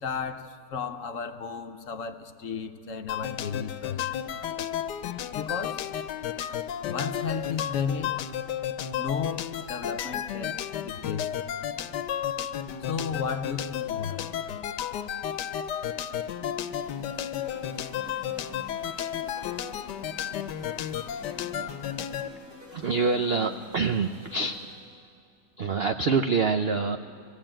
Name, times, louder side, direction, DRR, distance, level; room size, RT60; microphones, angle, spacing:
voice 1, 0.0-4.6 5.3-5.8 6.8-8.2 9.0-11.4 12.8-14.4, left 6 dB, 60° left, 8 dB, 1.0 m, -34 dB
sound 1, 3.1-22.3, left 10 dB, 80° left, 1.3 m, -33 dB
sound 2, 16.6-25.0, left 1 dB, 65° right, 6.7 m, -48 dB
voice 2, 22.7-24.7 25.6-27.0, right 4 dB, 90° right, 8 dB, 0.5 m, -26 dB
20.0 x 15.5 x 8.9 m, 2.4 s
omnidirectional pair, 1.8 m